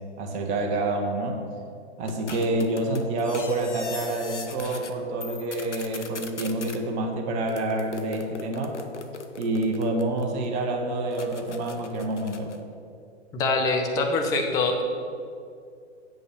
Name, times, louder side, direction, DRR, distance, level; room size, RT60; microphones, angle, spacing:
voice 1, 0.2-1.4 2.0-8.8 9.4-12.6, right 2 dB, 20° right, 1 dB, 1.1 m, -27 dB
sound 1, 2.1-4.9 5.2-6.8 7.5-10.5 11.1-12.6, left 4 dB, 80° left, 0.8 m, -40 dB
voice 2, 13.3-14.8, left 3 dB, 10° left, 3 dB, 0.5 m, -24 dB
8.2 x 5.4 x 7.4 m, 2.3 s
figure-of-eight pair, 115°, 35 cm